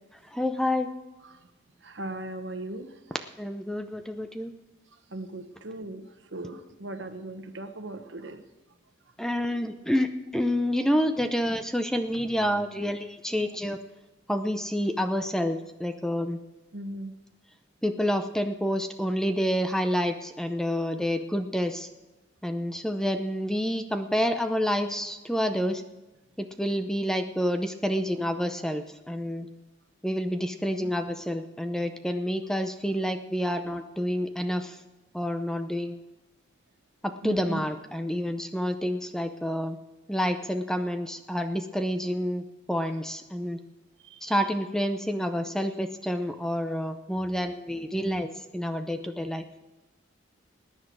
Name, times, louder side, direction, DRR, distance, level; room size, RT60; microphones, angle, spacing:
voice 1, 0.3-0.9 3.4-4.5 9.2-13.8 14.3-16.4 17.8-21.9 22.4-25.8 26.4-29.5 30.0-34.8 35.1-36.0 37.0-39.8 40.1-43.6 44.2-49.4, equal, 5° left, 7 dB, 0.6 m, -28 dB
voice 2, 1.8-3.0 5.1-8.4 16.7-17.1 30.8-30.9 37.2-37.6 44.0-44.3, right 1 dB, 75° right, 8 dB, 1.2 m, -38 dB
20.5 x 9.9 x 4.7 m, 1.1 s
head